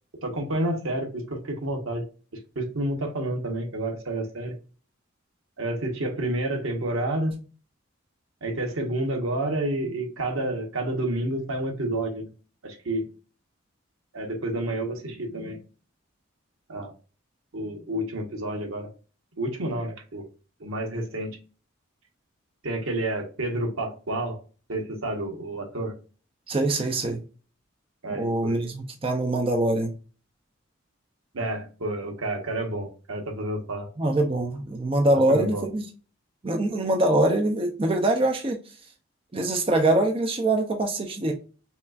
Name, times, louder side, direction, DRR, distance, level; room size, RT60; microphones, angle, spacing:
voice 1, 0.2-2.0 2.5-4.5 5.6-7.3 8.4-12.3 12.6-13.0 14.1-15.6 16.7-16.9 17.5-18.9 19.4-20.3 20.6-21.4 22.6-24.4 24.7-25.9 28.0-28.7 31.3-33.9 35.1-35.7, right 1 dB, 85° right, 1.2 m, -29 dB
voice 2, 26.5-27.2 28.1-30.0 34.0-35.8 36.4-38.7 39.3-41.3, right 1 dB, 25° right, 0.5 m, -24 dB
5.5 x 2.4 x 2.4 m
head